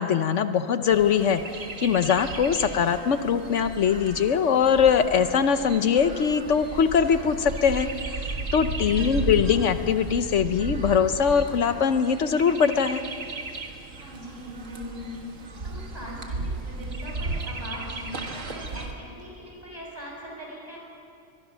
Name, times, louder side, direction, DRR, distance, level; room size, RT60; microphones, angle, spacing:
voice 1, 0.0-7.9 8.2-8.3 8.5-13.0, left 7 dB, 75° left, 10 dB, 1.1 m, -22 dB
Chirp tweet, 0.9-18.9, right 3 dB, 85° right, 2.0 m, -35 dB
voice 2, 8.7-9.0 14.1-15.2 15.6-20.8, equal, 30° right, -3 dB, 6.7 m, -40 dB
23.5 x 22.5 x 6.2 m, 2.5 s
omnidirectional pair, 1.3 m